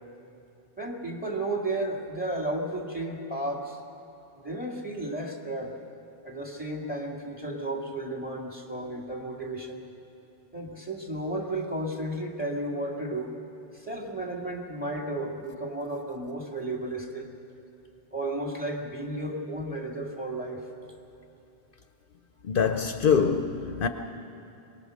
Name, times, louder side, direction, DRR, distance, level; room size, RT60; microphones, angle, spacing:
voice 1, 0.8-3.8 4.3-5.8 6.2-9.9 10.5-13.3 13.7-17.3 18.1-20.6, right 1 dB, 10° right, 2.2 m, -33 dB
voice 2, 22.4-23.9, left 6 dB, 60° left, 0.8 m, -24 dB
23.0 x 19.5 x 6.5 m
omnidirectional pair, 1.0 m